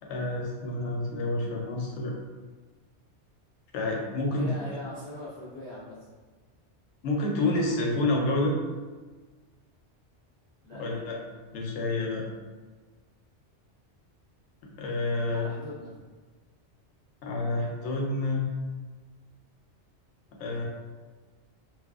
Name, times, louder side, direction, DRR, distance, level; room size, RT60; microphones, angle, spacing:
voice 1, 0.0-2.2 3.7-4.8 7.0-8.6 10.7-11.2 11.5-12.3 14.8-15.5 17.2-18.5 20.4-20.6, left 2 dB, 85° left, 0 dB, 0.9 m, -28 dB
voice 2, 4.2-6.0 10.6-10.8 15.3-15.9, left 2 dB, 5° left, -12 dB, 0.8 m, -40 dB
2.7 x 2.3 x 2.3 m, 1.4 s
omnidirectional pair, 1.2 m